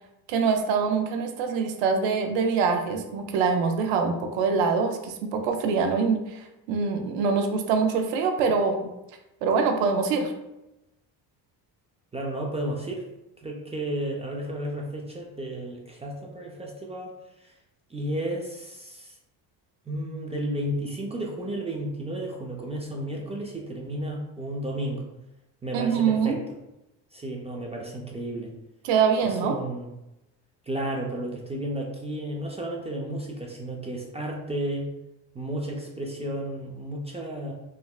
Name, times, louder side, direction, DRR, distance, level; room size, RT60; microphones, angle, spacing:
voice 1, 0.3-8.9 9.4-10.3 25.7-26.4 28.8-29.6, right 5 dB, 85° right, 5 dB, 0.5 m, -24 dB
voice 2, 12.1-13.0 13.4-17.1 17.4-17.5 17.9-19.2 19.9-25.0 25.6-26.4 27.1-28.5 29.2-29.9 30.7-34.9 35.3-37.5, right 1 dB, 15° right, -1 dB, 0.4 m, -32 dB
3.7 x 2.1 x 2.3 m, 0.92 s
supercardioid pair, 85°, 44 cm